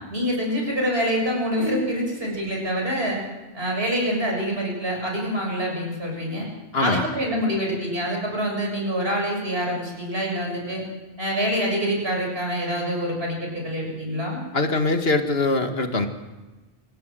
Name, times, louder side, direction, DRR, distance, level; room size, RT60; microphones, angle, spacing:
voice 1, 0.1-3.2 3.5-6.5 6.8-10.8 11.2-14.4, equal, 75° right, 0 dB, 7.4 m, -26 dB
voice 2, 6.7-7.0 14.5-16.1, left 3 dB, 75° left, 6 dB, 2.2 m, -22 dB
27.0 x 16.0 x 7.7 m, 1.2 s
omnidirectional pair, 1.0 m